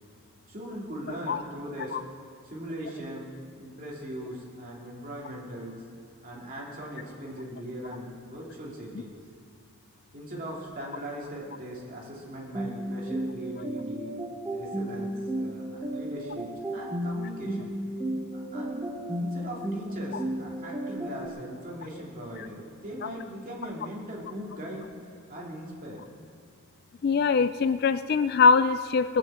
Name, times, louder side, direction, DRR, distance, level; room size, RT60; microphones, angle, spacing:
voice 1, 0.5-2.0 2.4-5.8 6.2-9.2 10.1-14.1 14.5-17.7 18.3-18.8 19.2-24.9 25.3-26.0, right 1 dB, 35° right, -3 dB, 2.8 m, -40 dB
sound 1, 12.5-21.3, right 1 dB, 10° right, 1.2 m, -33 dB
voice 2, 27.0-29.2, left 5 dB, 45° left, 13 dB, 0.3 m, -22 dB
20.5 x 7.0 x 7.9 m, 2.2 s
head